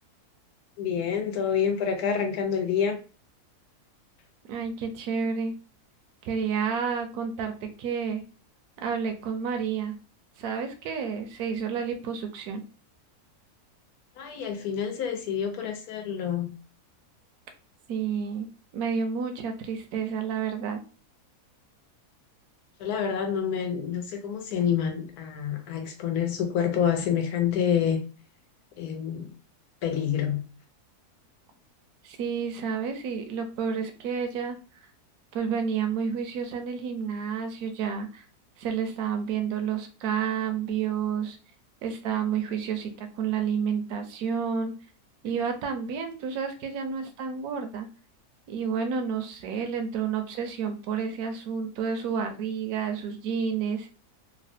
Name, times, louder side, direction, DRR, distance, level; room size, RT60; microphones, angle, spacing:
voice 1, 0.8-3.0 14.2-16.5 22.8-28.0 28.8-29.3 29.8-30.4, left 8 dB, 75° left, 1.2 m, -27 dB
voice 2, 4.5-5.5 6.2-8.2 8.8-10.0 10.4-12.6 17.9-18.5 18.7-20.8 32.0-34.6 35.3-38.2 38.6-41.4 41.8-44.7 45.2-47.9 48.5-53.9, right 6 dB, 75° right, 1.0 m, -30 dB
3.2 x 2.1 x 2.6 m
omnidirectional pair, 1.6 m